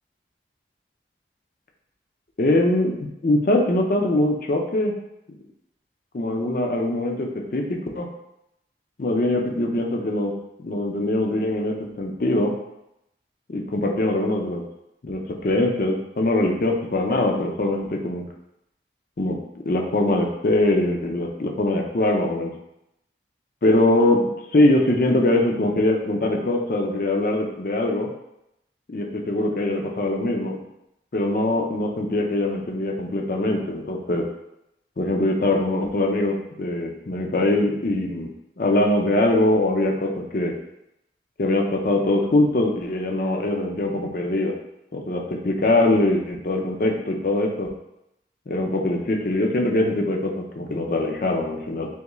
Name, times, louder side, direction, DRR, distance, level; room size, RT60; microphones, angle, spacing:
voice 1, 2.4-2.9 3.2-4.9 6.1-8.1 9.0-10.3 10.6-12.5 13.5-14.6 15.0-18.3 19.2-19.4 19.7-22.5 23.6-28.1 28.9-30.6 31.1-34.2 35.0-38.3 38.6-40.5 41.4-44.5 44.9-47.7 48.5-51.9, left 1 dB, 50° left, 2 dB, 0.5 m, -22 dB
3.5 x 3.1 x 3.0 m, 0.84 s
head